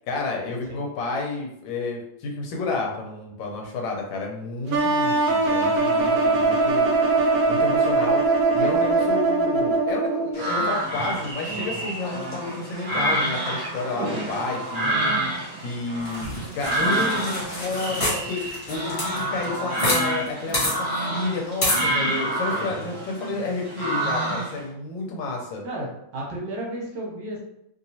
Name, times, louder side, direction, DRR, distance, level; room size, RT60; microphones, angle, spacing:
voice 1, 0.1-6.9 7.5-8.2 8.5-15.2 15.6-18.4 18.7-25.6, left 3 dB, 75° left, 0 dB, 1.4 m, -30 dB
sound 1, 4.7-10.5, right 3 dB, 85° right, 0.7 m, -21 dB
sound 2, 10.3-24.6, right 1 dB, 35° right, 0.6 m, -28 dB
sound 3, 16.0-20.0 20.3-20.4 20.5-20.7 21.6-21.8, left 1 dB, 35° left, 1.4 m, -27 dB
voice 2, 22.5-22.9 25.6-27.4, right 1 dB, 70° right, -3 dB, 1.5 m, -33 dB
3.2 x 2.9 x 2.7 m, 0.79 s
omnidirectional pair, 2.1 m